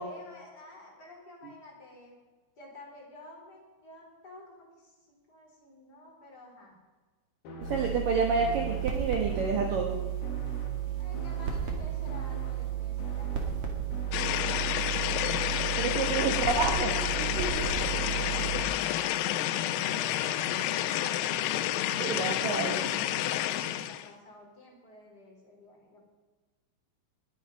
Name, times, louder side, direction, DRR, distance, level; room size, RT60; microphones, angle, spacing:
voice 1, 0.0-2.2 2.6-6.7 11.0-14.8 16.0-16.3 17.3-21.5 23.2-26.0, left 2 dB, 20° left, -1 dB, 3.8 m, -50 dB
sound 1, 7.4-14.8, left 2 dB, 60° left, 3.3 m, -45 dB
sound 2, 7.6-18.6, right 10 dB, 45° right, 2.0 m, -33 dB
voice 2, 7.6-10.0 15.8-17.5 22.0-22.9, right 4 dB, 75° right, 2 dB, 2.0 m, -29 dB
sound 3, 14.1-24.1, left 12 dB, 90° left, 3.5 m, -30 dB
20.5 x 9.2 x 5.4 m, 1.3 s
omnidirectional pair, 5.8 m